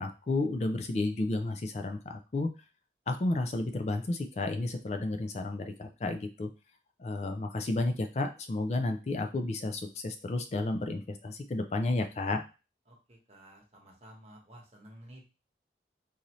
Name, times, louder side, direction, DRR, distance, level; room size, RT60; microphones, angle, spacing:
voice 1, 0.0-2.5 3.1-6.5 7.0-12.4, left 2 dB, 40° left, 6 dB, 0.4 m, -32 dB
voice 2, 12.9-15.2, right 1 dB, 35° right, -1 dB, 1.1 m, -53 dB
3.9 x 2.7 x 3.0 m, 0.31 s
head